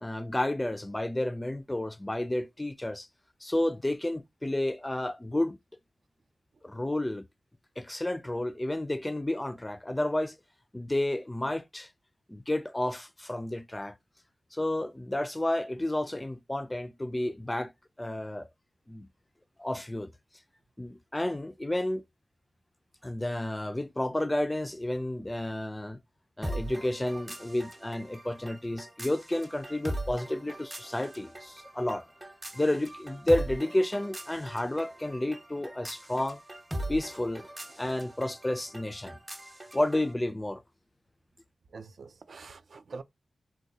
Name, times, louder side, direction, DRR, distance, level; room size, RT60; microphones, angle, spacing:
voice 1, 0.0-3.1 3.4-5.6 6.6-7.3 7.8-10.4 10.7-11.9 12.3-13.9 14.5-17.7 18.0-18.5 18.9-19.1 19.6-20.1 20.8-22.0 23.0-26.0 26.4-32.0 32.5-36.4 36.9-37.5 37.8-39.2 39.7-40.6, left 1 dB, 15° left, 0.3 m, -31 dB
sound 1, 26.4-40.1, right 1 dB, 15° right, 0.7 m, -41 dB
voice 2, 41.7-43.0, right 4 dB, 65° right, 0.4 m, -45 dB
3.7 x 2.2 x 2.6 m
wide cardioid pair, 90°, 0 cm